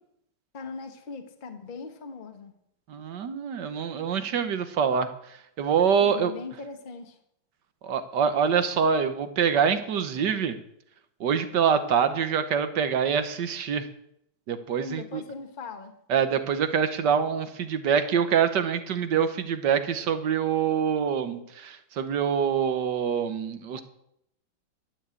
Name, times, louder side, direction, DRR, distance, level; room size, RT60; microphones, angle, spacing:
voice 1, 0.5-2.5 6.0-7.2 14.8-15.9 23.7-23.8, left 4 dB, 30° left, 1.2 m, -40 dB
voice 2, 2.9-5.1 5.6-6.3 7.8-10.6 11.2-13.9 14.5-15.2 16.1-23.8, right 7 dB, 65° right, 1.6 m, -25 dB
12.0 x 7.6 x 8.3 m
omnidirectional pair, 2.1 m